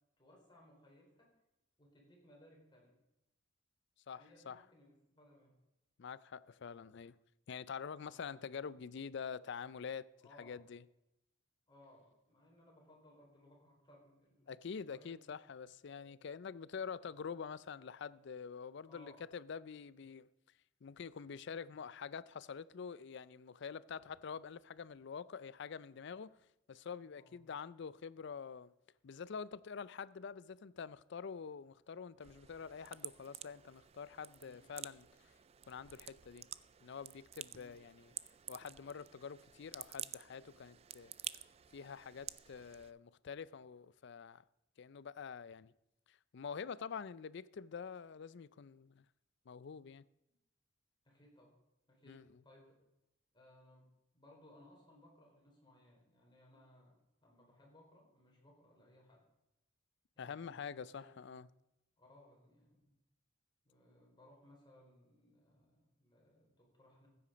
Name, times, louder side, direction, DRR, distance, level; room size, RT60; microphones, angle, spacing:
voice 1, 0.2-1.3 1.8-3.0 4.1-5.5 8.0-8.3 10.2-10.6 11.7-14.5 14.9-15.2 15.6-15.7 18.9-19.2 27.1-27.4 34.4-34.7 37.6-37.7 51.0-51.6 51.9-52.8 53.3-53.9 54.1-59.2 60.1-61.4 62.0-62.9 63.6-67.1, left 1 dB, 25° left, 4.3 m, -64 dB
voice 2, 4.1-4.6 6.0-7.1 7.5-10.1 10.4-10.8 14.5-20.3 20.8-26.4 26.7-28.7 29.0-35.0 35.7-36.4 36.8-38.1 38.5-41.1 41.7-44.4 44.8-45.7 46.3-49.0 49.5-50.0 52.1-52.2 60.2-61.5, left 6 dB, 60° left, 0.4 m, -46 dB
sound 1, 32.2-42.9, right 11 dB, 30° right, 0.3 m, -51 dB
15.0 x 8.6 x 5.1 m
head